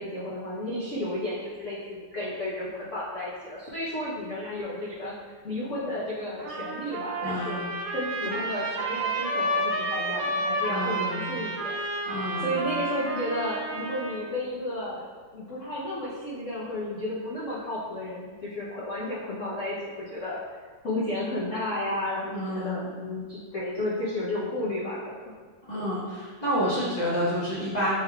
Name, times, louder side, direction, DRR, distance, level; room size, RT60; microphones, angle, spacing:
voice 1, 0.0-5.2 5.4-7.7 7.9-12.1 12.4-20.4 20.8-25.3, left 1 dB, 75° left, -8 dB, 0.6 m, -32 dB
Trumpet, 6.4-14.3, right 1 dB, 70° right, 1.2 m, -31 dB
voice 2, 7.2-7.7 10.7-11.4 12.1-12.7 22.3-23.0 25.7-28.0, equal, 35° left, -9 dB, 0.7 m, -29 dB
6.0 x 3.6 x 2.3 m, 1.5 s
omnidirectional pair, 2.4 m